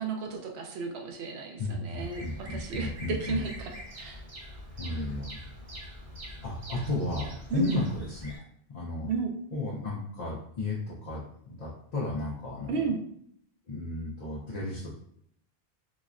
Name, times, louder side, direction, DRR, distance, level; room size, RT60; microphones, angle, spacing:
voice 1, 0.0-4.2 7.5-7.7 9.1-9.3 12.7-13.0, right 4 dB, 80° right, 3 dB, 0.8 m, -33 dB
voice 2, 1.6-3.4 4.8-5.4 6.4-8.3 8.7-9.1 9.5-12.9 13.7-14.9, left 2 dB, 45° left, -6 dB, 0.6 m, -34 dB
Bird vocalization bird call bird song, 2.0-8.4, equal, 35° right, 0.7 m, -44 dB
4.0 x 2.1 x 2.4 m, 0.70 s
omnidirectional pair, 1.1 m